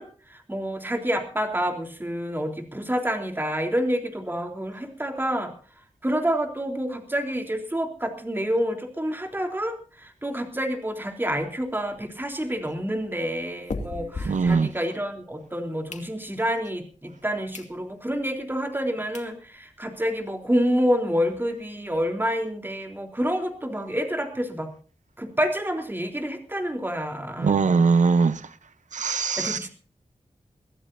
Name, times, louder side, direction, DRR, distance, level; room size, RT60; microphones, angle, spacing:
voice 1, 0.0-5.5 6.0-24.7 25.2-27.8 29.4-29.7, equal, 15° right, 3.6 m, -28 dB
sound 1, 11.4-15.3 15.6-16.6 17.1-17.2 17.5-17.8 18.2-18.3 18.8-18.9 19.1-19.3 19.8-19.9 20.0-20.2 20.5-20.6 20.9-22.0, left 3 dB, 75° left, 2.4 m, -39 dB
voice 2, 14.2-14.7 27.4-28.6 28.9-29.7, right 5 dB, 90° right, 0.8 m, -21 dB
23.5 x 15.5 x 2.7 m
wide cardioid pair, 90°, 12 cm